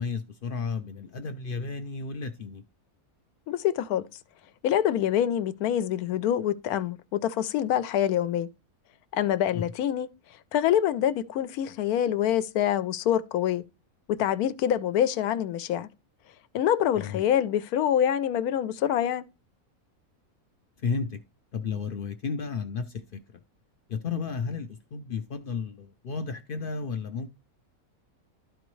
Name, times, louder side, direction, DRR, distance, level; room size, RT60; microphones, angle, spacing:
voice 1, 0.0-2.6 9.5-9.6 17.0-17.2 20.8-21.2 21.5-22.9 23.9-27.3, left 5 dB, 70° left, 0.5 m, -32 dB
voice 2, 3.5-4.1 4.6-8.5 9.1-10.1 10.5-13.6 14.1-15.9 16.5-19.2, left 10 dB, 85° left, 1.1 m, -25 dB
12.0 x 4.5 x 3.1 m
omnidirectional pair, 1.5 m